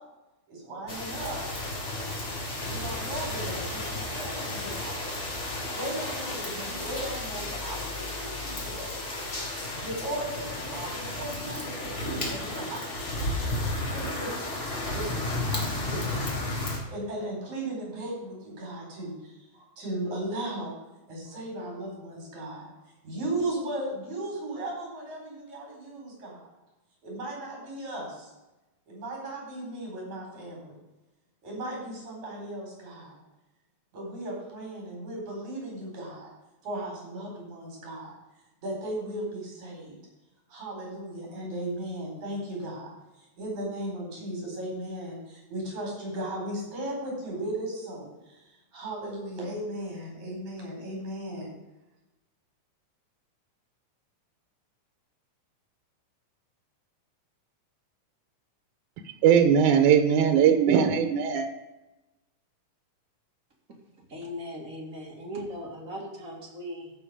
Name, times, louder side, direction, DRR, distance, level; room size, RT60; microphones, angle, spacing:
voice 1, 0.5-1.4 2.6-5.2 5.7-8.9 9.8-12.8 13.8-16.2 16.9-20.8 21.1-22.7 23.0-26.5 27.0-28.3 28.9-30.8 31.4-33.2 33.9-36.3 36.6-38.2 38.6-40.0 40.5-42.9 43.4-51.5, right 1 dB, 70° right, 5.7 m, -36 dB
sound 1, 0.9-16.8, left 2 dB, 30° left, 1.5 m, -33 dB
voice 2, 59.2-61.5, right 8 dB, 85° right, 2.4 m, -20 dB
voice 3, 63.7-66.9, equal, 30° right, 2.0 m, -39 dB
15.0 x 5.9 x 5.0 m
omnidirectional pair, 3.5 m